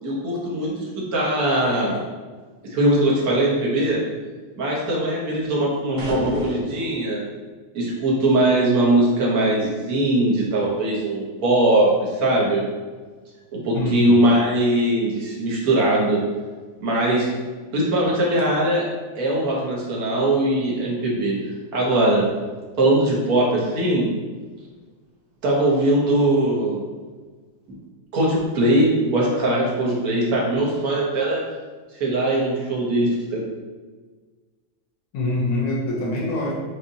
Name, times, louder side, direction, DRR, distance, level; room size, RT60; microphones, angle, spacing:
voice 1, 0.0-2.0 2.7-4.0 4.6-7.2 7.7-12.6 13.5-16.2 16.8-17.3 17.7-21.4 21.7-22.3 22.8-24.1 25.4-26.8 27.7-27.8 28.1-31.4 32.0-33.4, right 1 dB, 50° right, -4 dB, 1.3 m, -21 dB
sound 1, 6.0-7.0, equal, 65° right, 0.9 m, -27 dB
voice 2, 13.7-14.4 35.1-36.5, left 2 dB, 85° left, -3 dB, 1.6 m, -24 dB
6.7 x 2.5 x 2.7 m, 1.4 s
omnidirectional pair, 2.3 m